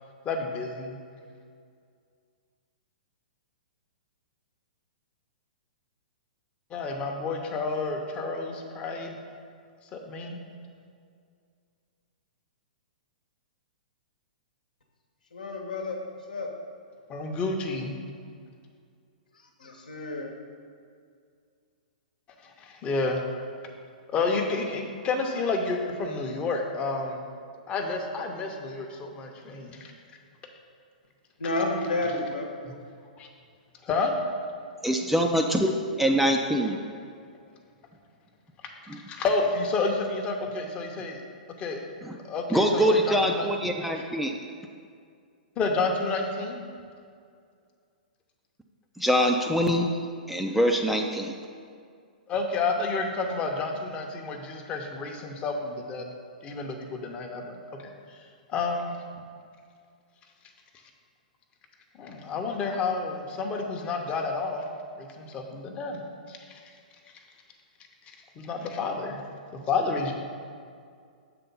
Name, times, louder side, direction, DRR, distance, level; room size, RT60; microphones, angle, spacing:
voice 1, 0.2-1.0 6.7-9.1 9.9-10.4 17.1-17.9 22.4-23.2 24.1-27.2 27.7-29.9 32.0-32.1 33.2-33.3 33.8-34.1 39.0-41.2 41.6-41.8 42.2-43.7 45.6-46.6 52.3-56.1 56.4-57.5 58.5-59.0 62.0-64.7 65.0-66.0 66.3-66.4 68.1-69.2 69.5-70.1, left 3 dB, 25° left, 3 dB, 0.7 m, -30 dB
voice 2, 15.3-16.0 16.3-16.5 19.6-20.3 31.4-32.5, left 2 dB, 75° left, 2 dB, 1.0 m, -30 dB
voice 3, 34.8-35.7 36.0-36.8 38.9-39.0 42.0-42.2 42.5-44.4 49.0-49.9 50.3-51.3, equal, ahead, 2 dB, 0.3 m, -24 dB
6.8 x 3.7 x 5.3 m, 2.2 s
figure-of-eight pair, 110°, 5 cm